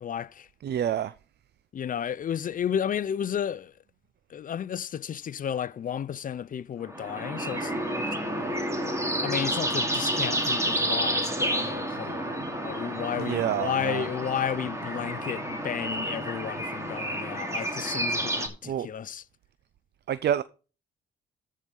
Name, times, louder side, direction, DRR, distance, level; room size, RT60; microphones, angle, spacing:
voice 1, 0.0-0.5 1.7-3.7 4.3-7.7 9.2-12.3 12.6-19.2, left 8 dB, 45° left, 0.5 m, -32 dB
voice 2, 0.6-1.1 13.2-14.1 18.6-18.9 20.1-20.4, right 10 dB, 55° right, 0.6 m, -28 dB
sound 1, 6.8-18.5, right 1 dB, 15° right, 2.6 m, -30 dB
14.0 x 4.9 x 5.4 m
cardioid pair, 90°, 20 cm